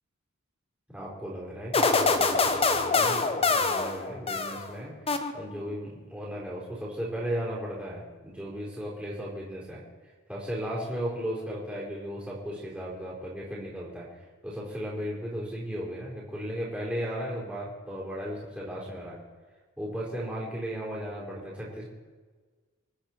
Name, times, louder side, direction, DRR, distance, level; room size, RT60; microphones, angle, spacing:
voice 1, 0.9-9.8 10.3-14.2 14.4-19.2 19.8-21.9, equal, 5° right, -6 dB, 4.3 m, -36 dB
sound 1, 1.7-4.7 5.1-5.7, left 4 dB, 25° left, 1.0 m, -25 dB
27.0 x 9.6 x 4.5 m, 1.4 s
head